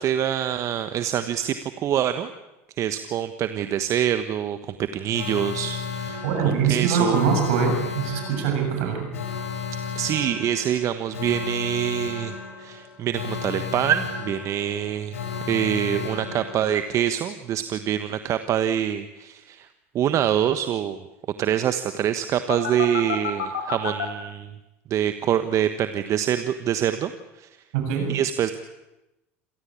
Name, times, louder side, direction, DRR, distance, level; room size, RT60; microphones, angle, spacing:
voice 1, 0.0-2.3 2.8-7.2 9.9-15.2 15.5-19.7 19.9-21.0 21.4-24.5 24.9-27.1 27.4-27.5 28.1-28.5, right 10 dB, 45° right, 10 dB, 1.3 m, -25 dB
Alarm, 5.1-17.0 22.5-24.1, left 7 dB, 85° left, 4.9 m, -33 dB
voice 2, 6.2-9.1 27.7-28.1, right 6 dB, 70° right, 4 dB, 7.3 m, -23 dB
27.0 x 17.5 x 8.6 m, 0.98 s
hypercardioid pair, 85°, 7 cm